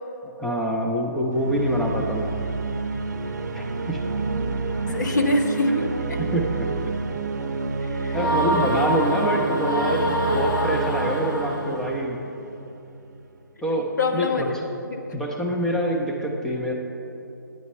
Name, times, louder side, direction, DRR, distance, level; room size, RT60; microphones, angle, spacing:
voice 1, 0.2-2.3 3.5-4.0 4.9-5.0 6.2-6.9 8.1-12.2 13.6-14.6 15.1-16.7, right 1 dB, 5° left, -1 dB, 0.9 m, -26 dB
sound 1, 1.3-12.9, right 4 dB, 55° right, 0.8 m, -29 dB
voice 2, 4.9-6.2 7.8-8.2 14.0-14.5 14.9-15.0, left 2 dB, 60° left, 3 dB, 1.5 m, -24 dB
sound 2, 8.1-11.9, equal, 80° left, 2.5 m, -26 dB
11.0 x 9.3 x 5.5 m, 2.8 s
figure-of-eight pair, 140°, 11 cm